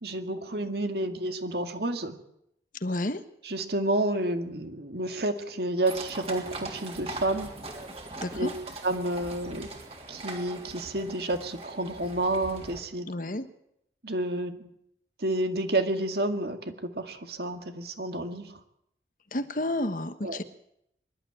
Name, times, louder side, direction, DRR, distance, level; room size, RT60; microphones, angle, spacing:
voice 1, 0.0-2.2 3.4-7.5 8.3-8.5 8.8-9.7 10.1-13.1 14.0-14.7 15.2-18.5 20.2-20.4, right 1 dB, 60° right, 6 dB, 2.1 m, -30 dB
voice 2, 2.8-3.2 8.2-8.5 13.1-13.4 19.3-20.4, left 1 dB, 45° left, 10 dB, 1.3 m, -30 dB
sound 1, 5.9-12.8, right 2 dB, 35° right, 3.3 m, -41 dB
24.5 x 12.0 x 8.8 m, 0.77 s
head